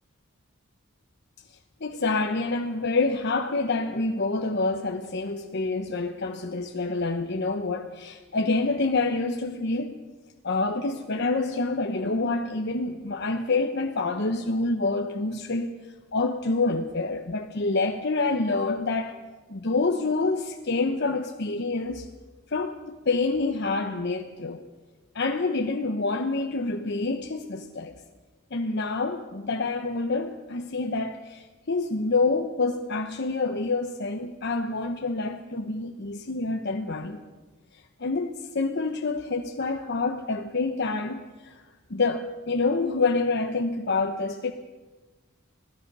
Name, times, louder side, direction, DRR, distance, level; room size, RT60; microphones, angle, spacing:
voice 1, 1.8-9.9 10.4-15.7 16.1-19.2 19.5-22.1 22.5-24.6 25.1-28.0 28.5-37.2 38.0-41.6 41.9-44.5, left 3 dB, 55° left, 1.0 m, -27 dB
26.5 x 17.5 x 5.5 m
head